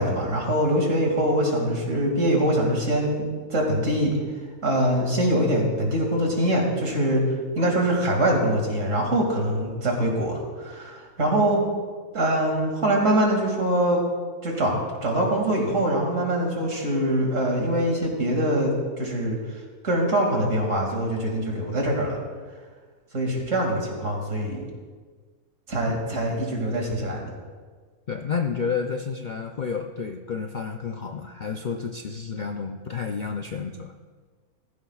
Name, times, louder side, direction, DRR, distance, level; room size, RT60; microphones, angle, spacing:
voice 1, 0.0-4.1 4.6-7.2 7.6-11.6 12.1-14.0 14.4-22.2 23.1-24.6 25.7-27.3, right 1 dB, 55° right, 0 dB, 2.7 m, -23 dB
voice 2, 28.1-33.9, left 6 dB, 85° left, 4 dB, 0.4 m, -30 dB
16.0 x 14.5 x 2.4 m, 1.5 s
omnidirectional pair, 1.6 m